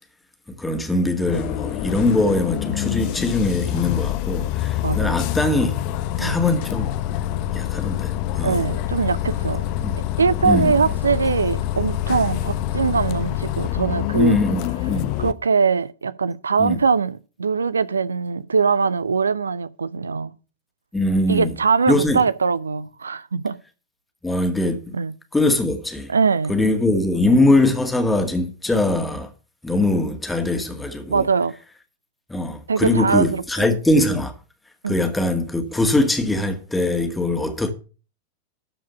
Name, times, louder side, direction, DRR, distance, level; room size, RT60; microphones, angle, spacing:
voice 1, 0.6-5.8 6.2-6.9 7.5-8.7 9.8-10.0 10.4-10.9 14.1-15.1 16.6-16.8 20.9-21.5 21.9-22.2 24.2-24.9 25.3-26.1 26.5-29.3 29.6-31.3 32.3-34.3 34.9-37.7, left 2 dB, 5° left, 2.0 m, -21 dB
Bus, 1.3-15.3, left 13 dB, 45° left, 0.8 m, -26 dB
voice 2, 4.8-5.2 6.2-6.4 8.4-9.7 10.2-14.4 15.2-20.3 21.3-23.5 24.9-25.1 26.1-26.5 31.1-31.5 32.7-33.7 34.8-35.0, right 5 dB, 75° right, 0.5 m, -22 dB
13.0 x 4.9 x 6.9 m
figure-of-eight pair, 90°, 0 cm